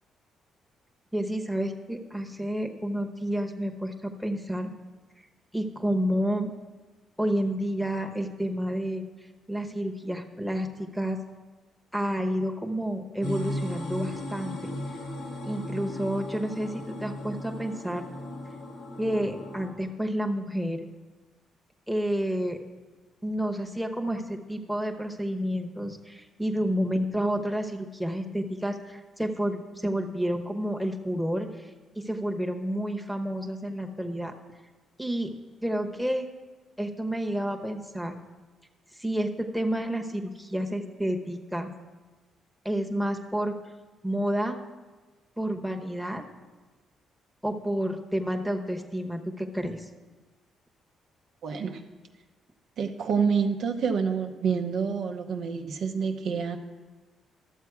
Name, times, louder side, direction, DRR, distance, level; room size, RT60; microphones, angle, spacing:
voice 1, 1.1-4.7 5.5-6.5 7.2-9.0 9.5-11.2 11.9-14.6 15.4-18.0 19.0-20.9 21.9-22.6 23.2-31.7 32.0-34.3 35.0-35.3 35.6-36.3 36.8-38.2 39.0-41.7 42.6-43.6 44.0-44.6 45.4-46.2 47.4-49.9, equal, ahead, 4 dB, 1.0 m, -30 dB
sound 1, 13.2-19.7, left 1 dB, 90° left, 1.9 m, -36 dB
voice 2, 51.4-51.8 52.8-56.6, right 6 dB, 70° right, 4 dB, 0.8 m, -27 dB
12.0 x 7.2 x 4.8 m, 1.3 s
cardioid pair, 90°, 0 cm